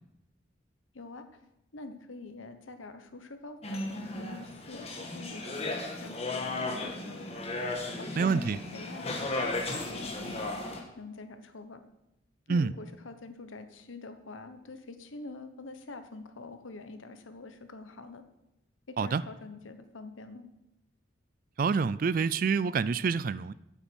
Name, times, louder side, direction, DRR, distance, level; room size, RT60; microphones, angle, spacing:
voice 1, 0.9-1.3 1.7-5.6 6.0-7.3 8.0-11.8 12.5-18.2 18.9-20.5, left 3 dB, 85° left, 1.1 m, -46 dB
sound 1, 3.6-10.8, left 2 dB, 30° left, 1.4 m, -35 dB
voice 2, 8.2-8.6 12.5-12.7 19.0-19.2 21.6-23.5, right 5 dB, 45° right, 0.3 m, -27 dB
9.3 x 8.0 x 6.2 m
head